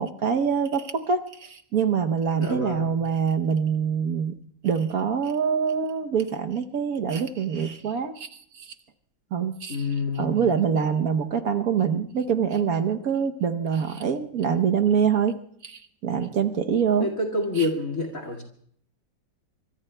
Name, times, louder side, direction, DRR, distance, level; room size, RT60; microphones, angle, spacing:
voice 1, 0.0-8.3 8.5-8.7 9.3-9.8 10.2-17.1 17.6-17.7, right 7 dB, 60° right, 6 dB, 1.2 m, -25 dB
voice 2, 2.3-2.9 9.7-10.4 17.0-18.4, left 2 dB, 45° left, 3 dB, 2.4 m, -27 dB
26.5 x 24.5 x 2.2 m, 0.63 s
omnidirectional pair, 2.0 m